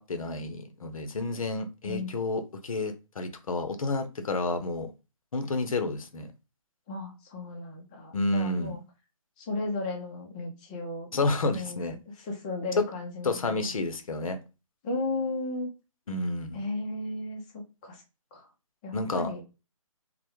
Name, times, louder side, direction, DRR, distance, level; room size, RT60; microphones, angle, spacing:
voice 1, 0.0-4.9 5.3-6.3 8.1-8.8 11.1-12.0 13.2-14.4 16.1-16.6 18.9-19.3, left 2 dB, 80° left, 0.5 m, -30 dB
voice 2, 1.8-2.1 6.9-8.8 9.4-11.1 11.5-13.7 14.8-15.7 16.5-18.0 18.3-18.5 18.8-19.4, left 2 dB, 15° left, 0.4 m, -35 dB
2.1 x 2.0 x 2.9 m
figure-of-eight pair, 145°, 18 cm